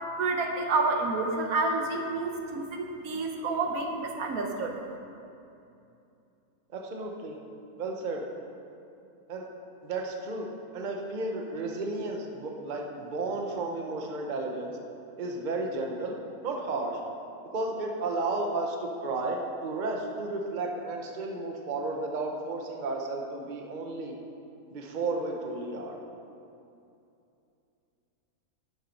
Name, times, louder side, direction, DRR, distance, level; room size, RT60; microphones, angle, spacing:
voice 1, 0.2-4.8, right 3 dB, 75° right, 3 dB, 1.4 m, -29 dB
voice 2, 6.7-7.4 7.8-8.2 9.3-9.5 9.8-10.5 10.7-14.8 15.2-16.2 16.4-17.0 17.5-24.1 24.7-26.0, right 2 dB, 35° right, 1 dB, 0.9 m, -33 dB
10.5 x 7.4 x 5.3 m, 2.7 s
omnidirectional pair, 1.5 m